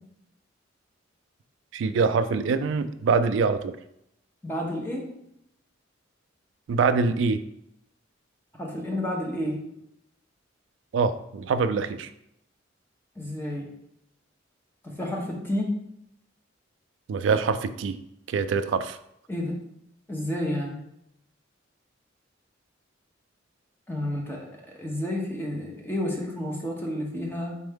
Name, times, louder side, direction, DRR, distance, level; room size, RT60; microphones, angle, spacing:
voice 1, 1.7-3.8 6.7-7.4 10.9-12.1 17.1-18.0 18.3-19.0, right 5 dB, 70° right, 10 dB, 0.3 m, -24 dB
voice 2, 4.4-5.1 8.5-9.6 13.2-13.7 14.8-15.7 19.3-19.6 20.1-20.8 23.9-27.6, left 1 dB, 10° left, -1 dB, 0.9 m, -30 dB
4.4 x 3.4 x 3.5 m, 0.78 s
head